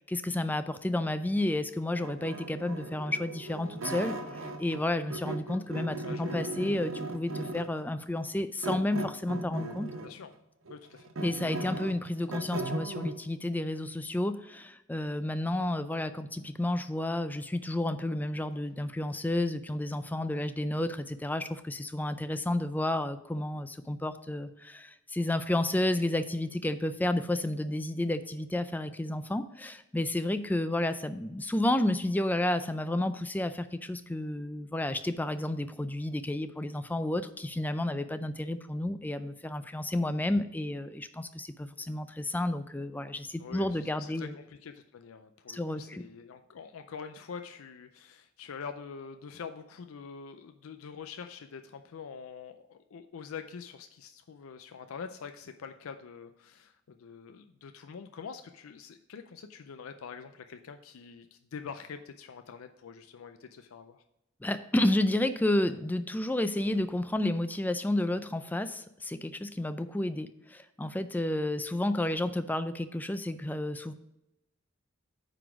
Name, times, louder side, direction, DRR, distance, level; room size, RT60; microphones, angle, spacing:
voice 1, 0.0-9.9 11.2-44.3 45.5-46.0 64.4-73.9, left 1 dB, 10° left, 11 dB, 0.3 m, -31 dB
sound 1, 2.0-4.8 5.1-7.8 8.6-10.2 10.7-13.2, right 2 dB, 70° right, 0.8 m, -37 dB
voice 2, 6.0-6.4 10.0-10.3 10.7-11.1 30.7-30.8 43.4-64.0, left 6 dB, 85° left, 8 dB, 0.4 m, -45 dB
9.2 x 4.0 x 4.9 m, 0.87 s
head